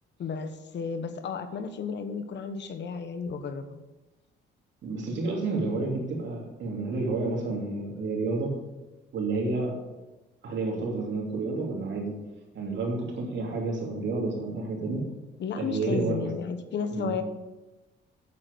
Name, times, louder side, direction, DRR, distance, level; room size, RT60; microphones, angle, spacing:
voice 1, 0.2-3.8 15.4-17.2, left 6 dB, 65° left, 9 dB, 1.2 m, -33 dB
voice 2, 4.8-8.5 9.1-9.8 10.4-12.2 12.5-15.1 15.6-16.3 16.9-17.1, right 3 dB, 65° right, 0 dB, 2.9 m, -30 dB
8.3 x 7.7 x 6.7 m, 1.1 s
cardioid pair, 90°, 20 cm